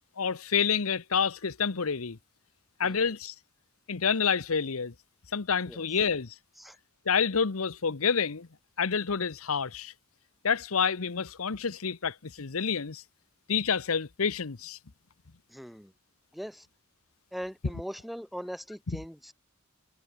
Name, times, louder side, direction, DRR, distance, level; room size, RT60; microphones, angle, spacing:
voice 1, 0.2-2.2 2.8-3.3 3.9-4.9 5.3-6.3 7.1-8.5 8.8-9.9 10.4-13.0 13.5-14.8 18.9-19.0, left 6 dB, 90° left, 0.9 m, -28 dB
voice 2, 15.5-15.9 16.3-16.7 17.3-19.3, equal, ahead, 1.0 m, -40 dB
head